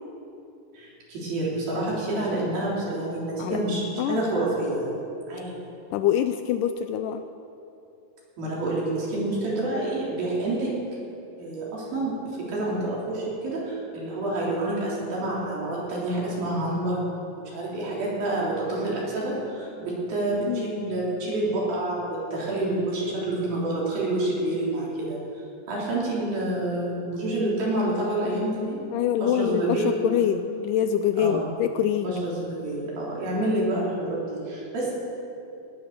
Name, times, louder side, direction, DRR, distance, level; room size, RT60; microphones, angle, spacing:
voice 1, 0.7-5.0 5.3-5.5 8.4-10.7 11.4-12.1 12.5-17.0 17.4-25.2 25.7-28.8 29.2-29.9 31.2-31.5 32.0-34.9, right 1 dB, 80° right, -5 dB, 5.3 m, -28 dB
voice 2, 5.9-7.2 20.4-20.7 28.9-32.1, left 9 dB, 80° left, 9 dB, 1.9 m, -25 dB
17.5 x 9.8 x 6.6 m, 2.7 s
omnidirectional pair, 4.1 m